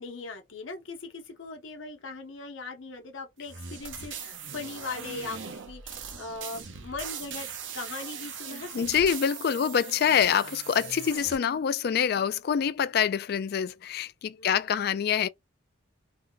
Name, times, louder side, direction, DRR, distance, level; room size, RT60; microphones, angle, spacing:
voice 1, 0.0-9.1 9.5-9.9 11.1-11.2 14.4-14.7, left 3 dB, 85° left, 0.8 m, -40 dB
sound 1, 3.4-11.4, right 7 dB, 75° right, 0.7 m, -40 dB
voice 2, 8.7-15.3, left 8 dB, 55° left, 0.3 m, -26 dB
2.7 x 2.2 x 3.8 m
head